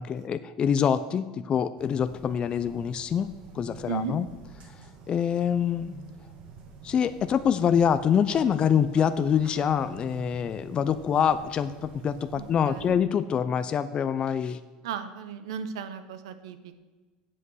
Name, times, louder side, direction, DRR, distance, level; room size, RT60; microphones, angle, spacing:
voice 1, 0.0-4.3 5.1-5.9 6.8-14.6, left 8 dB, 35° left, 12 dB, 0.5 m, -25 dB
sound 1, 1.8-13.0, right 5 dB, 50° right, 1.8 m, -47 dB
voice 2, 3.9-4.2 12.3-12.9 14.8-16.8, right 7 dB, 85° right, 11 dB, 0.8 m, -35 dB
8.0 x 7.6 x 6.3 m, 1.3 s
supercardioid pair, 105°, 3 cm